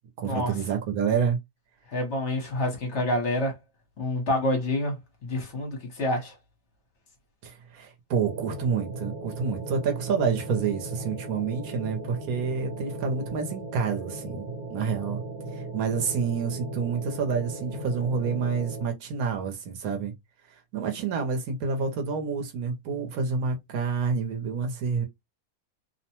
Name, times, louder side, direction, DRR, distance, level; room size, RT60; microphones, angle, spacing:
voice 1, 0.2-1.4 7.4-15.2 15.5-20.1 20.7-25.1, right 5 dB, 75° right, 1.2 m, -28 dB
voice 2, 1.9-3.5 4.0-4.9 5.2-6.3, left 1 dB, 55° left, 1.2 m, -27 dB
sound 1, 8.2-18.8, right 2 dB, 50° right, 0.8 m, -37 dB
2.8 x 2.1 x 2.8 m
omnidirectional pair, 1.5 m